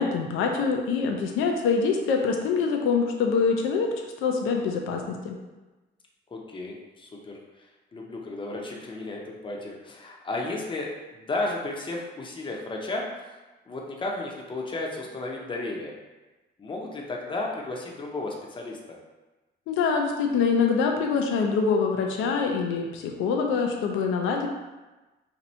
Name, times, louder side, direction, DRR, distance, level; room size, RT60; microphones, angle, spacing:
voice 1, 0.0-3.9 4.2-5.4 19.7-24.5, left 5 dB, 90° left, 2 dB, 0.5 m, -25 dB
voice 2, 6.3-7.4 7.9-13.1 13.7-15.9 16.6-19.0, left 2 dB, 25° left, -1 dB, 0.6 m, -33 dB
2.7 x 2.5 x 4.2 m, 1.2 s
cardioid pair, 90°, 20 cm